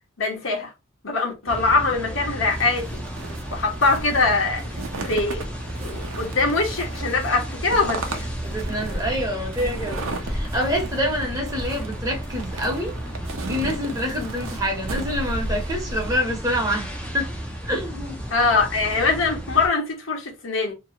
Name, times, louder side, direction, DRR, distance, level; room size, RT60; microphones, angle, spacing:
voice 1, 0.2-0.7 1.0-3.0 3.5-4.6 5.0-5.5 5.8-8.3 18.3-20.7, left 3 dB, 75° left, 1.2 m, -22 dB
sound 1, 1.5-19.7, equal, 5° left, 0.7 m, -33 dB
sound 2, 2.6-16.2, right 2 dB, 80° right, 0.7 m, -35 dB
voice 2, 8.4-13.0 13.4-17.3 17.6-18.2, equal, 15° right, 1.1 m, -27 dB
3.0 x 2.4 x 2.9 m
head